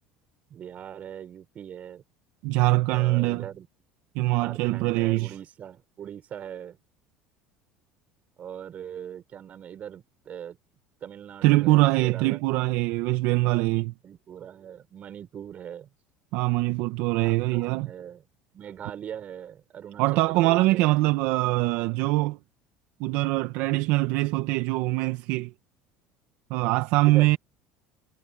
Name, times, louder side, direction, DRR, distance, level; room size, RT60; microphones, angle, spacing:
voice 1, 0.5-2.0 2.9-3.7 4.4-6.8 8.4-10.6 11.0-12.4 14.0-15.9 17.2-18.2 18.5-20.9 27.1-27.4, right 9 dB, 40° right, 5.8 m, -41 dB
voice 2, 2.4-3.5 4.1-5.3 11.4-13.9 16.3-17.9 20.0-22.4 23.0-25.5 26.5-27.4, right 19 dB, 70° right, 1.4 m, -23 dB
supercardioid pair, 105°, 4 cm